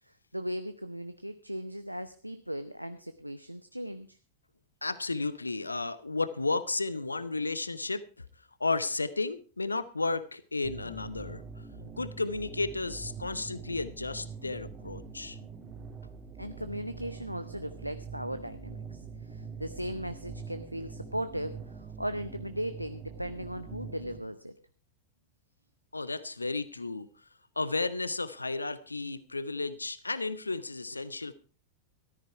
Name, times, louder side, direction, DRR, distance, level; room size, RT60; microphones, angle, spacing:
voice 1, 0.1-4.2 16.4-24.5, equal, 90° right, 11 dB, 0.6 m, -38 dB
voice 2, 4.8-8.0 8.6-11.4 12.0-15.4 25.9-27.1 27.6-31.3, left 3 dB, 80° left, 16 dB, 0.7 m, -33 dB
sound 1, 10.6-24.2, right 5 dB, 30° right, 2.2 m, -44 dB
14.0 x 13.5 x 4.5 m, 0.36 s
figure-of-eight pair, 90°, 0 cm